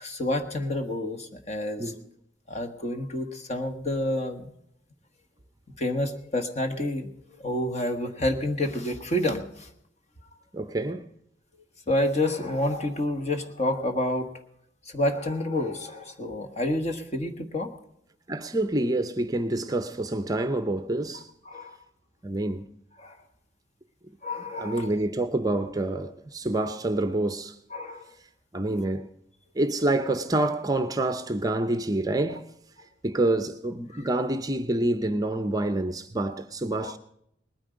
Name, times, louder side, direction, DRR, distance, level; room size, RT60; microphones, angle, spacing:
voice 1, 0.0-1.9 2.5-4.5 5.8-7.1 7.4-9.7 11.9-14.3 14.9-17.7 21.4-21.7 23.0-23.2 24.2-24.9 27.7-28.1 33.9-34.0 36.8-36.9, left 1 dB, 35° left, 1.5 m, -29 dB
voice 2, 10.5-11.1 18.3-21.3 22.2-22.7 24.6-27.5 28.5-29.1 29.6-32.5 33.0-37.0, right 2 dB, 20° right, 0.6 m, -27 dB
20.0 x 9.7 x 5.1 m
head